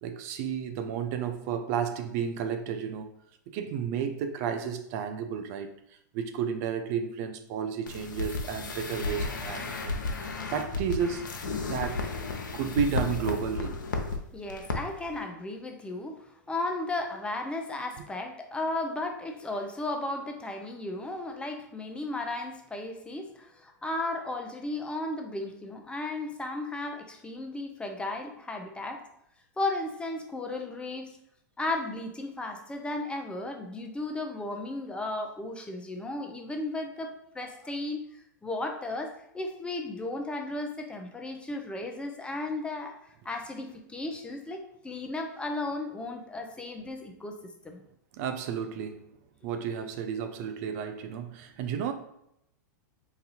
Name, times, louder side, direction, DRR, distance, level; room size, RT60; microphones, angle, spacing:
voice 1, 0.0-3.1 3.5-5.7 6.1-12.1 12.5-13.8 48.1-49.1 49.4-51.9, right 7 dB, 50° right, 0.5 m, -32 dB
sound 1, 7.9-14.2 14.5-14.8 15.0-15.1, left 3 dB, 85° left, 0.7 m, -33 dB
voice 2, 14.3-29.0 29.6-31.1 31.6-43.0 43.2-47.4 47.6-47.8, left 2 dB, 10° left, 0.7 m, -35 dB
4.0 x 2.6 x 4.1 m
hypercardioid pair, 110°, 10 cm